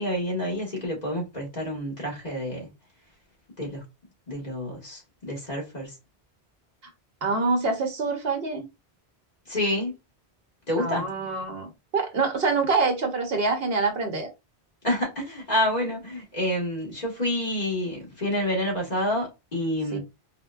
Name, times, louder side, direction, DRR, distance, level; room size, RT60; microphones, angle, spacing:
voice 1, 0.0-2.7 3.6-3.8 4.3-5.9 9.5-9.9 10.7-11.1 14.8-20.0, left 1 dB, 40° left, 1.4 m, -28 dB
voice 2, 7.2-8.7 10.8-14.3 19.9-20.0, right 4 dB, 65° right, 1.0 m, -26 dB
4.3 x 2.1 x 2.3 m
omnidirectional pair, 1.1 m